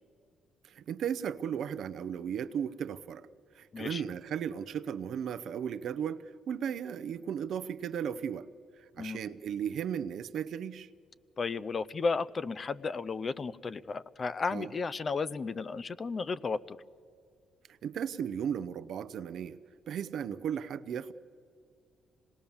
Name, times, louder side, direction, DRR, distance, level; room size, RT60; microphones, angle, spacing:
voice 1, 0.6-3.3 3.5-8.5 9.0-10.9 14.5-14.7 17.8-19.6 19.9-21.1, right 8 dB, 70° right, 13 dB, 0.7 m, -35 dB
voice 2, 11.4-16.8, left 4 dB, 40° left, 14 dB, 0.6 m, -33 dB
26.0 x 19.5 x 7.2 m, 2.2 s
cardioid pair, 90°, 0 cm